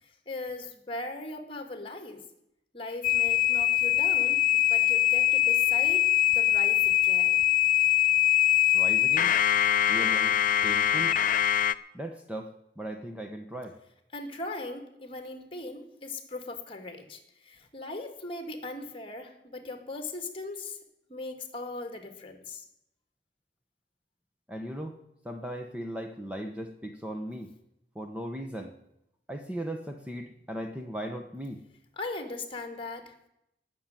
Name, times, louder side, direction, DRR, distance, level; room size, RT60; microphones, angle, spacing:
voice 1, 0.0-2.2 2.7-7.4 14.1-20.8 21.1-22.6 32.0-33.3, left 2 dB, 30° left, 6 dB, 2.2 m, -39 dB
sound 1, 3.0-11.7, left 12 dB, 50° left, 0.5 m, -23 dB
voice 2, 8.7-9.3 9.9-10.3 10.6-11.1 11.9-13.7 24.5-25.0 25.2-27.5 27.9-28.7 29.3-31.6, right 1 dB, 5° right, 4 dB, 1.0 m, -37 dB
17.0 x 6.8 x 9.1 m, 0.81 s
head